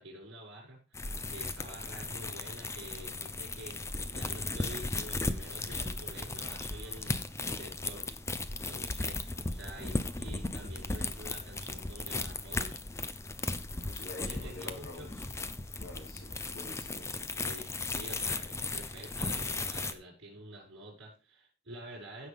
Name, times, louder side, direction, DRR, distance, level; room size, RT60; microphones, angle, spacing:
voice 1, 0.0-8.1 8.6-12.8 14.2-15.1 17.4-22.3, right 1 dB, 65° right, -2 dB, 6.0 m, -48 dB
Rotten cactus, 0.9-19.9, left 3 dB, 15° left, 0.5 m, -36 dB
voice 2, 13.8-15.3 15.8-17.1, left 2 dB, 80° left, -1 dB, 3.1 m, -47 dB
15.5 x 5.7 x 3.6 m, 0.33 s
head